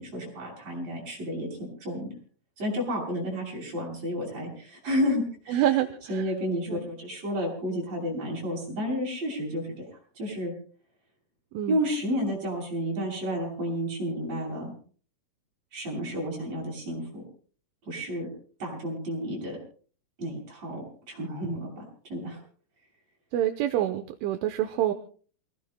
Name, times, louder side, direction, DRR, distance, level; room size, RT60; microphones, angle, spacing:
voice 1, 0.0-1.5 1.8-2.1 2.6-5.7 6.1-9.8 10.1-10.5 11.7-14.7 15.7-17.2 17.9-18.3 18.6-19.6 20.2-21.8 22.1-22.4, equal, 35° right, -2 dB, 7.5 m, -31 dB
voice 2, 5.5-6.2 6.7-6.9 11.5-11.8 23.3-24.9, right 12 dB, 80° right, 6 dB, 3.2 m, -27 dB
28.5 x 18.0 x 2.2 m, 0.42 s
omnidirectional pair, 5.7 m